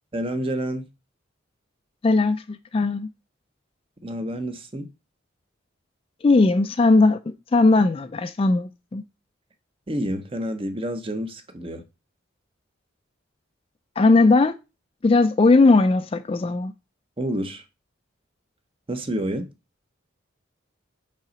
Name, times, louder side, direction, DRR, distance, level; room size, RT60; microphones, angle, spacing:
voice 1, 0.1-0.9 4.0-4.9 9.9-11.8 17.2-17.6 18.9-19.5, equal, 25° right, 0.7 m, -28 dB
voice 2, 2.0-3.1 6.2-7.2 7.5-9.0 14.0-14.5 15.0-16.7, left 3 dB, 30° left, 0.3 m, -18 dB
5.4 x 4.1 x 5.0 m
head